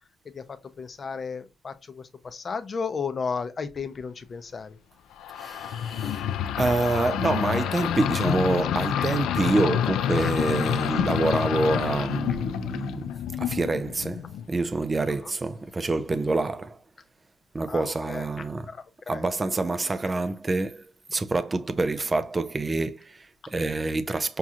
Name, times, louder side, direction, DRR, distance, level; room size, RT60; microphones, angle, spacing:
voice 1, 0.2-4.8 9.0-9.2 10.2-10.3 11.8-11.9 15.2-15.3 17.7-18.3 18.7-19.2, left 5 dB, 30° left, 0.5 m, -34 dB
sound 1, 5.2-14.5, left 10 dB, 80° left, 0.3 m, -28 dB
voice 2, 5.3-6.3 6.6-16.8 17.5-18.7 19.1-24.4, right 3 dB, 20° right, 0.4 m, -27 dB
6.1 x 2.8 x 2.4 m
cardioid pair, 135°, 0 cm